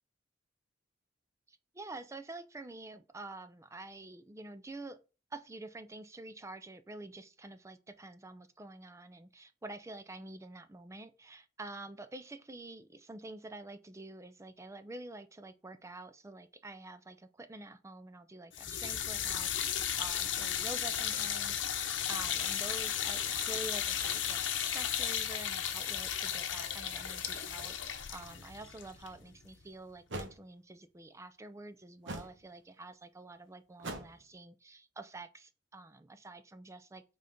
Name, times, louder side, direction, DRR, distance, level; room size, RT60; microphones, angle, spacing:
voice 1, 1.5-5.0 5.3-37.0, right 2 dB, 15° right, 0.5 m, -48 dB
sound 1, 18.5-29.6, left 9 dB, 85° left, 0.8 m, -35 dB
sound 2, 29.2-29.3 30.1-30.4 32.0-32.4 33.8-34.2, right 2 dB, 80° right, 1.1 m, -41 dB
5.4 x 3.9 x 5.1 m
head